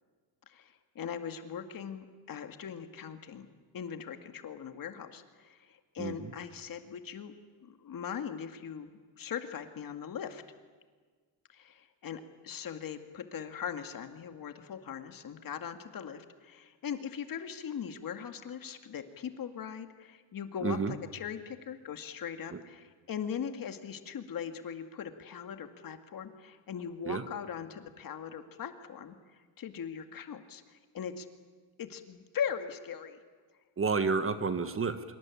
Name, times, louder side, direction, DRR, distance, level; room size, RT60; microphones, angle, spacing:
voice 1, 0.5-3.5 3.7-7.3 7.6-10.4 11.5-31.3 31.8-33.2, left 8 dB, 45° left, 8 dB, 2.2 m, -40 dB
voice 2, 6.0-6.3 20.6-21.0 22.5-22.6 27.0-27.2 33.8-35.0, right 5 dB, 30° right, 10 dB, 1.4 m, -30 dB
25.5 x 24.0 x 8.5 m, 1.5 s
cardioid pair, 155°, 46 cm